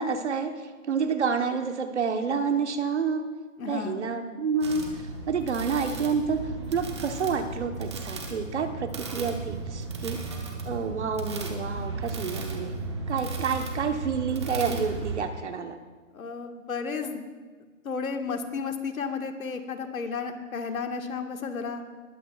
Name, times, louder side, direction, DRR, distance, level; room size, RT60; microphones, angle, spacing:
voice 1, 0.0-3.3 3.7-6.4 6.7-10.2 10.7-12.7 13.1-15.8, right 5 dB, 55° right, 7 dB, 1.2 m, -29 dB
voice 2, 3.6-4.2 16.1-17.2 17.8-21.8, left 5 dB, 80° left, 5 dB, 1.8 m, -33 dB
sound 1, 4.6-15.2, right 3 dB, 20° right, 0.9 m, -35 dB
20.0 x 14.0 x 2.4 m, 1.4 s
hypercardioid pair, 175°, 41 cm